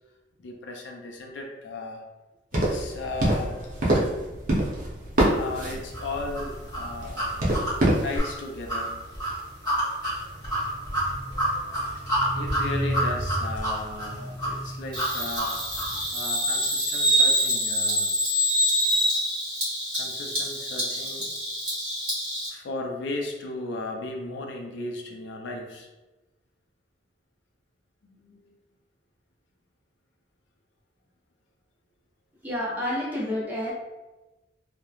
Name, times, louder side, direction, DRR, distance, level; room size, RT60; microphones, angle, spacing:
voice 1, 0.4-2.0 2.5-3.9 5.2-7.2 8.0-9.0 12.3-15.6 16.1-18.1 19.9-21.3 22.5-25.9 28.1-28.5, left 2 dB, 80° left, 1 dB, 0.4 m, -36 dB
sound 1, 2.5-8.2, right 1 dB, 50° right, 0.6 m, -26 dB
sound 2, 5.9-16.0, right 1 dB, 20° left, 1.5 m, -29 dB
Bird vocalization bird call bird song, 14.9-22.5, equal, 30° right, 1.4 m, -26 dB
voice 2, 32.4-33.7, left 1 dB, 10° right, -6 dB, 0.6 m, -29 dB
2.9 x 2.1 x 2.3 m, 1.1 s
head